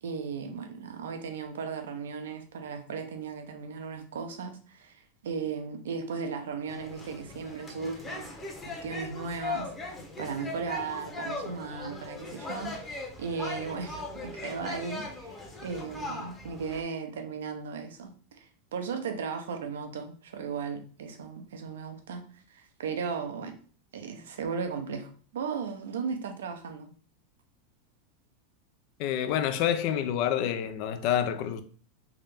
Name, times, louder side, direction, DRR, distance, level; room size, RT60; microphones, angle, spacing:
voice 1, 0.0-8.3 8.6-23.5 23.9-26.9, right 5 dB, 90° right, 0.7 m, -36 dB
sound 1, 6.7-16.8, left 3 dB, 15° left, 0.9 m, -39 dB
voice 2, 29.0-31.6, left 10 dB, 55° left, 0.5 m, -28 dB
3.5 x 2.8 x 3.4 m
supercardioid pair, 125°, 0 cm